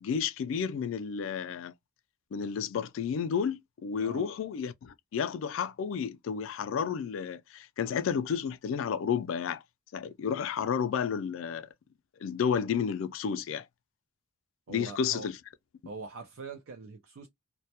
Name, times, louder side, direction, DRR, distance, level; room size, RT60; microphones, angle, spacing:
voice 1, 0.0-1.7 2.3-9.6 9.9-11.7 12.2-13.7 14.7-15.4, left 7 dB, 75° left, 0.3 m, -31 dB
voice 2, 14.7-15.3 15.8-17.3, right 4 dB, 80° right, 0.5 m, -43 dB
2.1 x 2.1 x 2.7 m
head